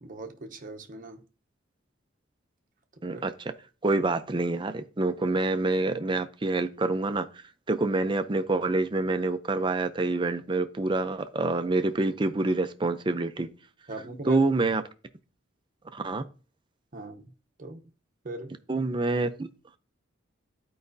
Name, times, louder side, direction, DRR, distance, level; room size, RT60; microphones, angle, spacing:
voice 1, 0.0-1.2 3.1-3.2 13.9-14.5 16.9-17.3 17.6-17.8 18.2-18.6, right 2 dB, 45° right, 0.8 m, -39 dB
voice 2, 3.0-3.3 3.8-7.3 7.7-13.5 14.3-14.8 15.9-16.2 18.7-19.5, right 2 dB, 25° right, 0.5 m, -27 dB
12.5 x 4.8 x 2.7 m
head